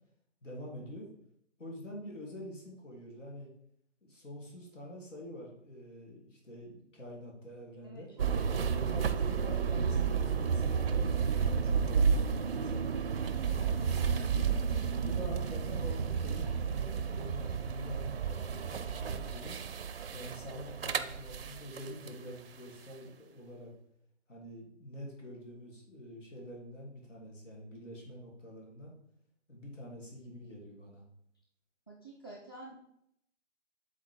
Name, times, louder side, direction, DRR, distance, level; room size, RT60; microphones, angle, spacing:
voice 1, 0.4-1.1 1.6-3.5 4.0-8.1 8.8-13.0 13.4-14.5 15.0-19.6 20.1-23.7 24.3-28.9 29.5-31.0, equal, 75° left, -2 dB, 2.8 m, -46 dB
voice 2, 7.8-8.9 14.7-15.0 31.9-32.8, right 2 dB, 20° left, -3 dB, 0.4 m, -49 dB
sound 1, 8.2-22.1, right 6 dB, 50° right, 0.5 m, -31 dB
7.3 x 4.1 x 4.5 m, 0.72 s
hypercardioid pair, 165°, 37 cm